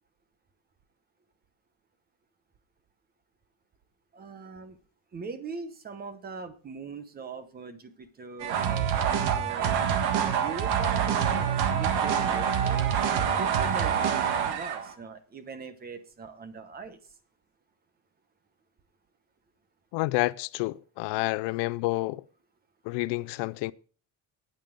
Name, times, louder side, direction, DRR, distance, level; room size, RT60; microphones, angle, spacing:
voice 1, 4.1-4.8 5.1-9.8 10.3-12.9 13.2-14.2 14.5-17.0, right 4 dB, 25° right, 0.9 m, -41 dB
sound 1, 8.4-14.9, right 8 dB, 70° right, 1.6 m, -26 dB
voice 2, 19.9-22.2 22.9-23.7, left 21 dB, 90° left, 0.6 m, -29 dB
9.2 x 9.1 x 5.1 m
cardioid pair, 170°, 40 cm